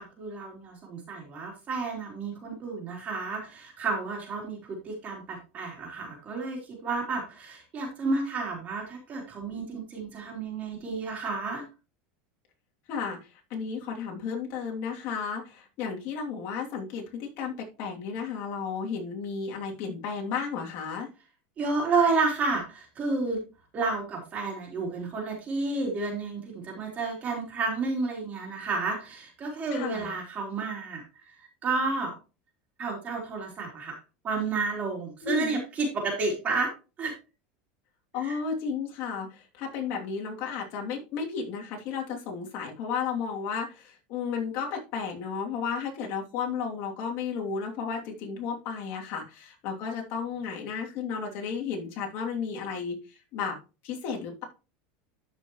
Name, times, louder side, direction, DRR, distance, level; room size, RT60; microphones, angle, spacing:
voice 1, 0.0-11.6 21.6-23.4 23.7-31.0 31.4-32.1 32.8-34.0 34.2-36.7 37.0-37.1 38.2-38.4, right 3 dB, 30° right, 3.3 m, -31 dB
voice 2, 13.5-21.1 29.7-30.1 35.2-35.6 38.1-53.0 53.3-53.6 53.8-54.4, left 6 dB, 50° left, 2.8 m, -33 dB
12.5 x 5.6 x 3.1 m
supercardioid pair, 140°, 5 cm